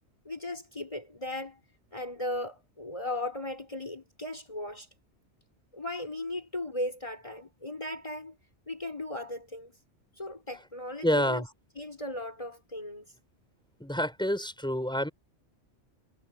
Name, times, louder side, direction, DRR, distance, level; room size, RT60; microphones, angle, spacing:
voice 1, 0.2-1.6 1.9-4.9 5.7-8.4 8.7-9.8 10.2-11.4 11.8-13.1, left 1 dB, 30° left, 4.6 m, -37 dB
voice 2, 11.0-11.5 13.8-15.1, equal, 5° left, 6.1 m, -28 dB
omnidirectional pair, 1.2 m